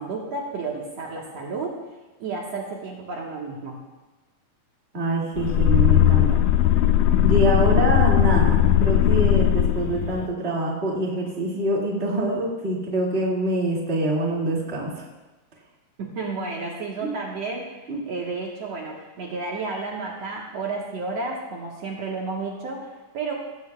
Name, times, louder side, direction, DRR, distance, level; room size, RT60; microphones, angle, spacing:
voice 1, 0.0-1.8 2.2-3.8 7.4-7.5 16.0-23.3, right 3 dB, 60° right, -2 dB, 2.5 m, -32 dB
voice 2, 4.9-6.4 7.2-15.1 17.0-17.1 17.9-18.0, right 1 dB, 20° right, -3 dB, 2.3 m, -25 dB
sound 1, 5.4-10.3, left 11 dB, 80° left, 1.5 m, -18 dB
18.5 x 15.0 x 2.4 m, 1.1 s
omnidirectional pair, 3.5 m